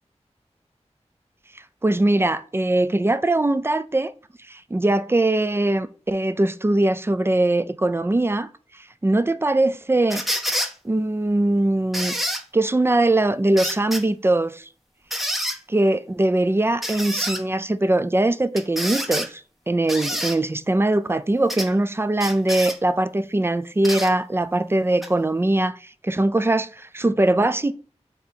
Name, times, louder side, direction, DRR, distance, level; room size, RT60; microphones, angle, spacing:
voice 1, 1.8-4.1 4.5-8.5 9.0-10.2 10.8-12.1 12.5-14.7 15.7-27.7, right 2 dB, 20° right, 0.3 m, -21 dB
sound 1, 10.1-10.7 11.9-12.4 13.6-14.0 15.1-15.6 16.8-17.4 18.6-19.3 19.9-20.4 21.5-21.7 22.2-22.8 23.8-24.1 25.0-25.1, equal, ahead, 0.8 m, -27 dB
4.0 x 3.6 x 2.8 m
cardioid pair, 40°, 12 cm